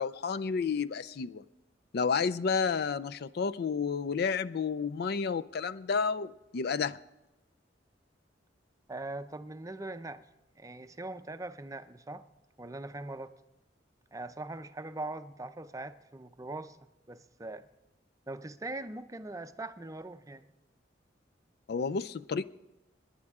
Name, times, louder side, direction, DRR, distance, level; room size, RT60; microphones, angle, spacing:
voice 1, 0.0-1.4 1.9-7.0 21.7-22.4, left 5 dB, 60° left, 0.4 m, -31 dB
voice 2, 8.9-10.3 10.6-12.3 12.6-13.4 14.1-16.8 17.1-17.7 18.3-20.4, right 2 dB, 20° right, 0.5 m, -41 dB
27.0 x 11.0 x 3.6 m
head